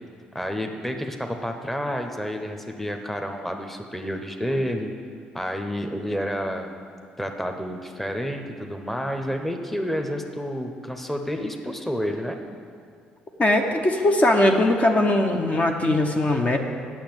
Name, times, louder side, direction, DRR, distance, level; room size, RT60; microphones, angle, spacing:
voice 1, 0.3-4.9 5.3-6.8 7.2-12.4, equal, 5° left, 4 dB, 1.0 m, -29 dB
voice 2, 13.4-16.6, left 1 dB, 35° left, 3 dB, 0.9 m, -20 dB
8.6 x 6.4 x 7.9 m, 2.3 s
hypercardioid pair, 55°, 4 cm